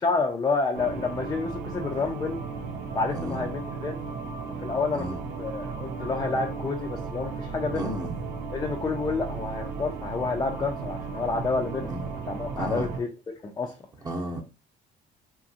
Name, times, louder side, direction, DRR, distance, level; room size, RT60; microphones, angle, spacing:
voice 1, 0.0-2.4 2.9-4.0 4.6-5.1 5.4-8.0 8.5-11.9 12.2-13.7, left 4 dB, 20° left, 0.4 m, -29 dB
sound 1, 0.7-13.0, right 5 dB, 80° right, 0.6 m, -35 dB
voice 2, 7.7-8.1 11.9-12.0 12.6-12.9 14.0-14.4, right 1 dB, 20° right, 0.7 m, -32 dB
2.8 x 2.4 x 2.7 m
cardioid pair, 110°, 17 cm